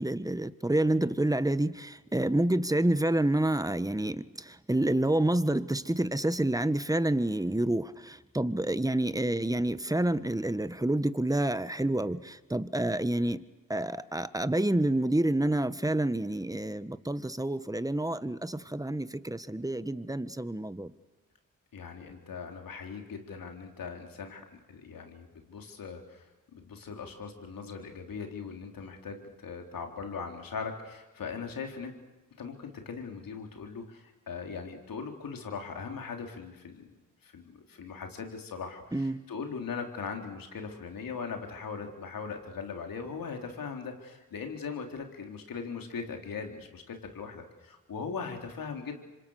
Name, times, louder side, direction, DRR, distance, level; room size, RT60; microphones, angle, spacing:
voice 1, 0.0-13.4 13.7-20.9 38.9-39.2, right 1 dB, 10° right, 13 dB, 1.5 m, -28 dB
voice 2, 21.7-32.0 32.4-36.9 37.2-49.0, left 5 dB, 80° left, 4 dB, 3.8 m, -40 dB
26.5 x 26.0 x 6.6 m, 1.2 s
cardioid pair, 45°, 33 cm